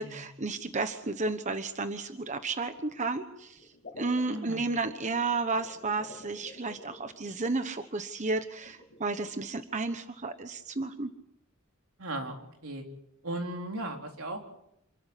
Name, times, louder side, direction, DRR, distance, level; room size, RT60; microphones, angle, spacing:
voice 1, 0.0-11.1, right 3 dB, 35° right, 9 dB, 1.1 m, -32 dB
sound 1, 3.6-7.7 8.6-9.3, left 2 dB, 45° left, 4.9 m, -50 dB
voice 2, 4.3-4.7 12.0-12.8 13.2-14.5, right 1 dB, 80° right, 3 dB, 4.1 m, -37 dB
28.0 x 13.5 x 10.0 m, 0.80 s
head